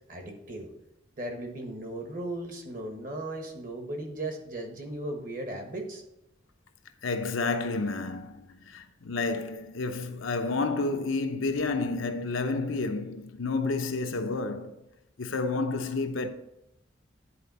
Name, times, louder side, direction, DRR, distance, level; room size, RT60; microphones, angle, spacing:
voice 1, 0.1-0.7 1.2-6.0, right 1 dB, 45° right, 1.3 m, -37 dB
voice 2, 7.0-14.7 15.2-16.3, left 3 dB, 90° left, 0.7 m, -30 dB
10.0 x 4.3 x 4.1 m
head